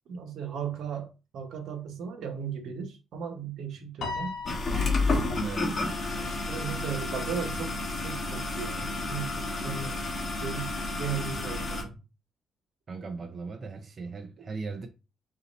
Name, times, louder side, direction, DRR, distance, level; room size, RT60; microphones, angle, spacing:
voice 1, 0.1-4.3 6.1-10.1 10.4-12.0, right 7 dB, 75° right, 1.1 m, -36 dB
Piano, 4.0-6.5, left 4 dB, 65° left, 1.0 m, -39 dB
sound 1, 4.5-11.8, left 2 dB, 40° left, 1.4 m, -31 dB
voice 2, 5.4-5.8 6.4-6.5 12.9-14.9, right 4 dB, 40° right, 0.6 m, -38 dB
3.9 x 2.8 x 4.1 m
cardioid pair, 90°, 0 cm